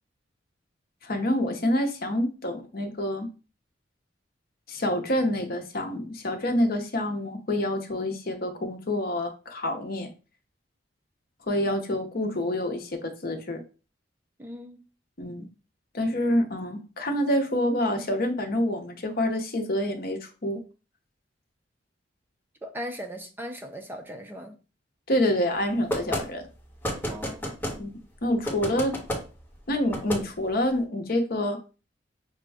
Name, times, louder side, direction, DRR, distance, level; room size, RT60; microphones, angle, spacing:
voice 1, 1.0-3.3 4.7-10.1 11.5-13.6 15.2-15.5 15.9-20.6 25.1-26.4 27.8-27.9 28.2-29.0 29.7-31.6, left 1 dB, 55° left, 0.8 m, -27 dB
voice 2, 14.4-14.8 22.6-24.6 27.1-27.7, equal, 10° right, 0.5 m, -38 dB
sound 1, 25.9-26.2 26.8-27.8 28.5-29.2 29.9-30.2, equal, 10° left, 1.1 m, -30 dB
6.0 x 2.2 x 3.4 m
head